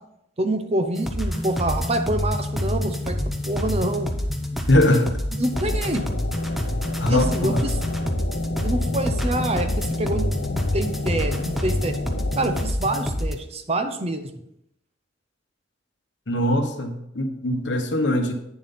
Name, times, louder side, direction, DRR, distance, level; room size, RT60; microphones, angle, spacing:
voice 1, 0.4-3.2 3.4-4.1 5.3-6.0 7.1-7.8 8.6-12.0 12.4-14.3, right 1 dB, 35° right, 7 dB, 0.8 m, -26 dB
sound 1, 1.0-13.4, equal, ahead, 0.8 m, -27 dB
Musical instrument, 1.3-4.8, right 1 dB, 40° left, 1.1 m, -41 dB
voice 2, 4.7-5.1 7.0-7.7 16.3-18.3, left 1 dB, 65° left, 6 dB, 1.2 m, -21 dB
sound 2, 5.5-12.7, left 3 dB, 85° left, 0.6 m, -32 dB
9.7 x 7.2 x 4.2 m, 0.82 s
head